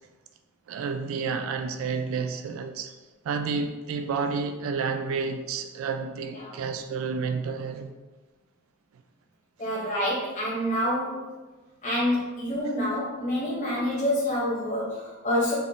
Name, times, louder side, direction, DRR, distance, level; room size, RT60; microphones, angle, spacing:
voice 1, 0.7-2.9 3.2-7.9, right 5 dB, 70° right, 7 dB, 0.3 m, -30 dB
voice 2, 9.6-11.2 11.8-15.5, left 1 dB, 35° left, -9 dB, 1.3 m, -27 dB
4.2 x 2.5 x 3.7 m, 1.2 s
head